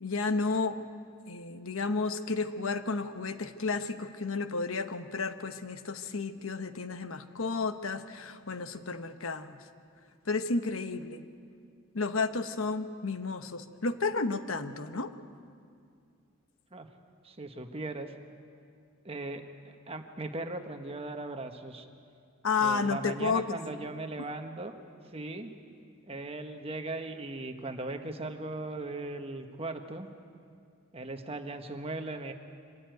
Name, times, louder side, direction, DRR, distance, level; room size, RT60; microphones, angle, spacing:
voice 1, 0.0-0.9 1.3-9.6 10.3-11.2 11.9-15.1 22.4-23.6, left 4 dB, 70° left, 9 dB, 1.0 m, -32 dB
voice 2, 17.2-18.1 19.0-21.9 22.6-24.7 25.1-25.5 26.1-30.1 30.9-32.3, right 2 dB, 25° right, 6 dB, 1.3 m, -38 dB
25.0 x 14.0 x 9.3 m, 2.3 s
head